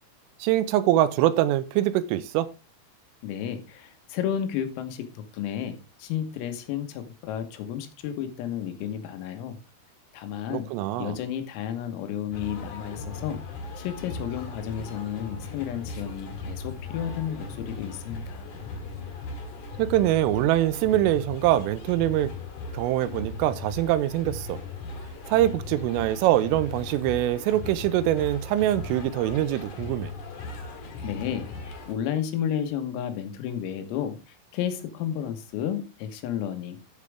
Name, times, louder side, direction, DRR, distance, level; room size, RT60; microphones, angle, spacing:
voice 1, 0.4-2.5 10.5-11.2 19.8-22.3 22.7-24.6 25.3-30.1, right 13 dB, 85° right, 15 dB, 3.2 m, -24 dB
voice 2, 3.2-9.6 10.1-10.7 11.0-13.4 13.8-18.5 31.0-34.2 34.5-36.8, left 9 dB, 85° left, 7 dB, 4.1 m, -32 dB
sound 1, 12.3-31.9, left 3 dB, 50° left, 3.0 m, -38 dB
13.5 x 6.7 x 3.5 m, 0.28 s
omnidirectional pair, 5.9 m